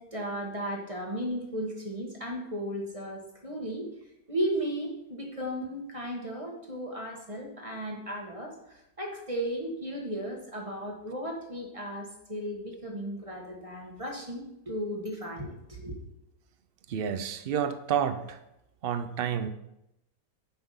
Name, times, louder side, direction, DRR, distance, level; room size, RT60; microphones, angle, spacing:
voice 1, 0.0-3.9 4.3-16.0, equal, 20° right, 0 dB, 1.4 m, -35 dB
voice 2, 16.9-18.4 18.8-19.5, right 8 dB, 70° right, 10 dB, 0.5 m, -29 dB
8.0 x 5.8 x 5.5 m, 0.85 s
omnidirectional pair, 1.7 m